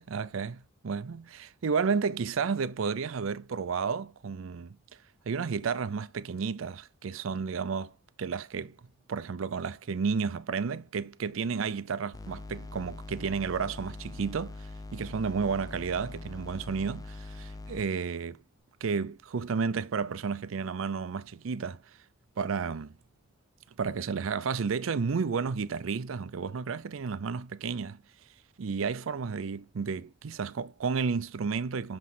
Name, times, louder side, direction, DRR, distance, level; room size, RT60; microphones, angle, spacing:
voice 1, 0.0-4.8 5.3-7.9 8.2-8.7 9.1-18.4 18.8-21.8 22.4-22.9 23.8-28.0 28.6-32.0, right 5 dB, 85° right, 0.5 m, -32 dB
sound 1, 12.1-17.9, left 2 dB, 20° left, 0.4 m, -43 dB
7.4 x 3.1 x 4.0 m
head